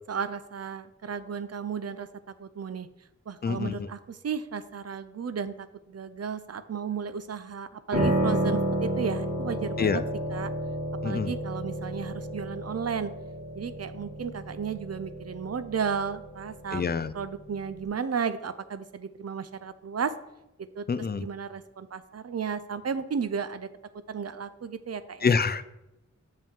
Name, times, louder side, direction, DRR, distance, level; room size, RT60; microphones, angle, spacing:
voice 1, 0.1-2.1 2.4-2.9 3.3-10.0 10.3-10.5 11.0-13.1 13.6-16.8 17.1-20.1 20.8-20.9 21.2-23.7 24.1-25.3, right 6 dB, 55° right, 13 dB, 0.5 m, -34 dB
voice 2, 3.4-3.9 9.8-10.0 11.0-11.3 16.7-17.1 20.9-21.3 25.2-25.6, left 5 dB, 35° left, 13 dB, 0.4 m, -26 dB
Piano, 7.9-17.9, right 1 dB, 75° right, 2.1 m, -31 dB
7.0 x 5.3 x 3.7 m, 0.91 s
wide cardioid pair, 70°, 30 cm